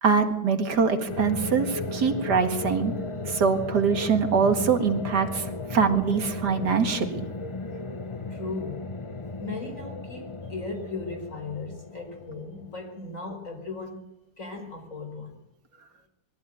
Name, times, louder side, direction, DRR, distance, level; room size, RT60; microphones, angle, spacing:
voice 1, 0.0-2.9 3.3-7.2, right 5 dB, 75° right, 6 dB, 2.5 m, -23 dB
sound 1, 1.1-13.1, left 3 dB, 25° left, 0.7 m, -35 dB
voice 2, 8.3-8.9 9.4-14.0 14.4-15.3, left 3 dB, 50° left, 4 dB, 5.4 m, -37 dB
22.5 x 14.5 x 9.2 m, 0.89 s
omnidirectional pair, 1.8 m